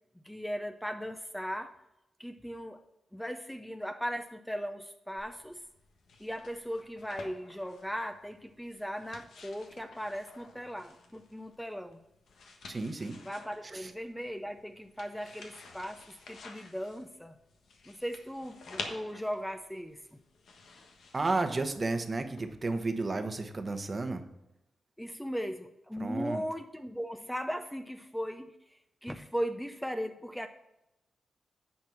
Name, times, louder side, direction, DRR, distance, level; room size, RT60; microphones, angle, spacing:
voice 1, 0.2-1.7 2.2-2.8 3.1-5.6 6.2-12.0 13.2-17.3 17.9-20.0 25.0-30.5, equal, 5° left, 7 dB, 0.6 m, -38 dB
sound 1, 5.2-22.4, left 4 dB, 80° left, 1.3 m, -50 dB
voice 2, 12.7-13.2 13.6-13.9 21.1-24.2 26.0-26.4, right 3 dB, 35° right, 8 dB, 1.0 m, -32 dB
9.2 x 4.4 x 7.2 m, 0.88 s
cardioid pair, 75°, 0 cm